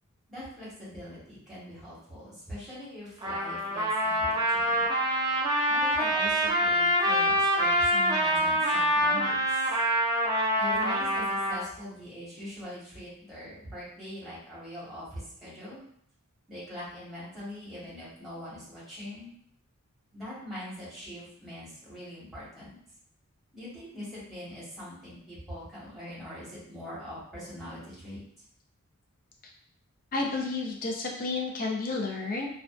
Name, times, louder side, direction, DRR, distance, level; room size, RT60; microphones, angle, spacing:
voice 1, 0.3-4.8 5.7-9.6 10.6-15.8 16.5-19.3 20.1-22.7 23.5-28.2, left 1 dB, ahead, -10 dB, 1.1 m, -42 dB
Trumpet, 3.2-11.6, equal, 20° right, 0.4 m, -25 dB
voice 2, 30.1-32.5, left 3 dB, 40° left, 0 dB, 0.5 m, -31 dB
2.5 x 2.2 x 2.3 m, 0.66 s
head